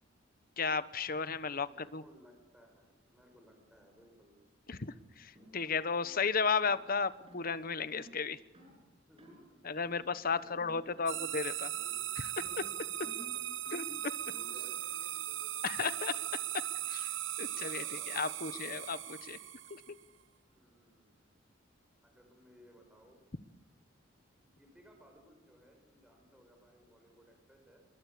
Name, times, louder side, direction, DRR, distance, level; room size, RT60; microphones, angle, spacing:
voice 1, 0.6-2.0 4.7-8.4 9.6-11.7 12.1-12.7 13.7-14.2 15.6-17.1 17.4-19.4 19.7-20.0, left 5 dB, 50° left, 14 dB, 1.1 m, -35 dB
voice 2, 1.6-4.3 9.1-9.6 12.8-13.6 14.3-15.7 17.5-18.7 20.5-21.1 22.0-23.2 24.4-27.8, equal, 5° right, 2 dB, 5.4 m, -62 dB
sound 1, 4.7-4.9 5.3-5.6 6.0-6.2 6.6-6.8 7.3-7.5 7.9-8.2 8.5-8.8 9.2-9.4 9.8-10.2 10.5-10.8 11.1-11.5 11.7-12.1 12.4-14.7, equal, 30° right, 7.8 m, -55 dB
sound 2, 11.1-20.0, right 12 dB, 80° right, 1.0 m, -38 dB
27.0 x 22.0 x 8.4 m, 1.0 s
head